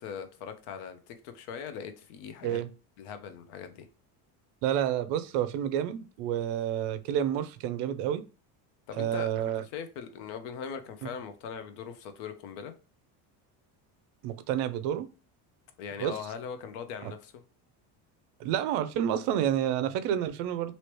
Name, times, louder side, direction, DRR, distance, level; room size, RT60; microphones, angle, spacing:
voice 1, 0.0-2.6 3.0-3.9 8.9-12.7 15.8-17.4, left 7 dB, 70° left, 0.7 m, -40 dB
voice 2, 4.6-8.2 9.0-9.6 14.2-15.1 16.0-16.1 18.4-20.7, right 10 dB, 65° right, 0.5 m, -29 dB
3.1 x 2.8 x 3.0 m
cardioid pair, 150°, 45 cm